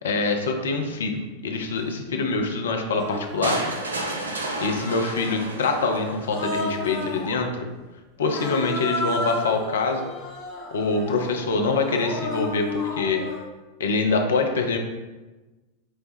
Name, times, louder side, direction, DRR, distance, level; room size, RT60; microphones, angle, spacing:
voice 1, 0.0-3.6 4.6-7.7 8.2-10.1 10.7-13.2 13.8-14.8, left 3 dB, 65° left, 3 dB, 0.6 m, -25 dB
Human voice, 1.8-1.9 2.9-3.8 4.4-5.5 6.2-7.3 8.2-13.5, left 2 dB, 30° left, 0.9 m, -33 dB
sound 1, 3.4-6.4, right 2 dB, 70° right, 0.6 m, -31 dB
sound 2, 5.7-6.2 6.8-7.4 8.2-8.8 9.8-10.2 10.7-11.2 11.7-12.2 12.7-13.5, equal, 5° right, 1.0 m, -41 dB
4.7 x 2.2 x 4.1 m, 1.2 s
figure-of-eight pair, 90°, 0 cm